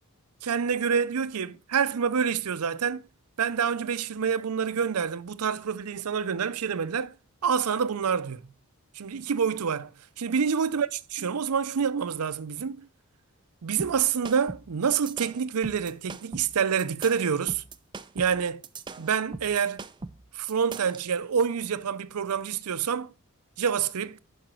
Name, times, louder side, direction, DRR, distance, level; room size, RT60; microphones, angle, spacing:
voice 1, 0.4-3.0 3.4-7.1 7.4-8.4 9.0-9.9 10.2-12.9 13.6-17.6 18.1-18.6 19.0-19.8 20.3-23.1 23.6-24.2, right 7 dB, 85° right, 0.6 m, -27 dB
sound 1, 13.8-21.0, right 3 dB, 20° right, 0.4 m, -40 dB
11.0 x 5.0 x 4.4 m
head